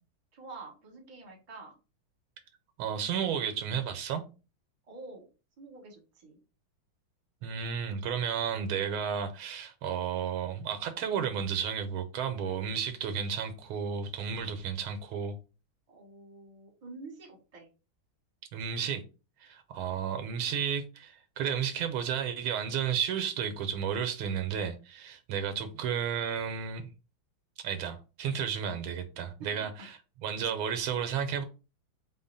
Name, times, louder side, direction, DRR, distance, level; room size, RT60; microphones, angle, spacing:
voice 1, 0.3-1.8 4.9-5.3 5.6-6.4 14.6-14.7 15.9-17.7 29.4-29.7, right 3 dB, 25° right, 0.8 m, -47 dB
voice 2, 2.8-4.2 7.4-15.3 18.5-19.0 19.4-26.9 27.6-29.7 30.2-31.4, right 7 dB, 80° right, 1.4 m, -32 dB
3.7 x 2.1 x 3.9 m
omnidirectional pair, 2.3 m